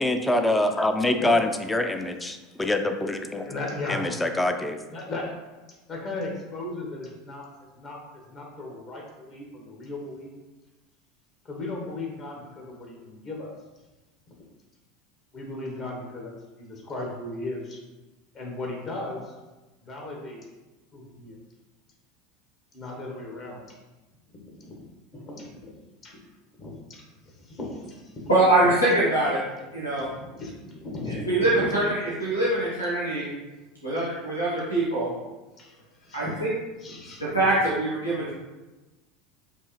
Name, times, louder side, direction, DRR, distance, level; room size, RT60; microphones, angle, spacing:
voice 1, 0.0-3.5 3.9-4.8, left 1 dB, 10° left, 7 dB, 0.4 m, -25 dB
voice 2, 3.4-4.0 4.9-5.3 5.9-7.5 7.7-10.3 11.4-13.5 15.3-17.8 18.3-19.3 19.8-20.5 20.9-21.4 22.7-23.8 24.5-24.9 25.1-25.8 26.0-26.2 26.6-27.1 27.3-28.2 28.6-28.7 30.0-31.8 32.5-32.7 35.6-36.3 36.8-37.2, left 2 dB, 40° left, -1 dB, 1.1 m, -36 dB
voice 3, 28.3-29.4 29.7-30.1 31.1-33.3 33.8-35.1 36.1-36.5 37.2-38.3, right 2 dB, 85° left, -7 dB, 1.0 m, -23 dB
4.5 x 2.7 x 3.0 m, 1.1 s
figure-of-eight pair, 75°, 0 cm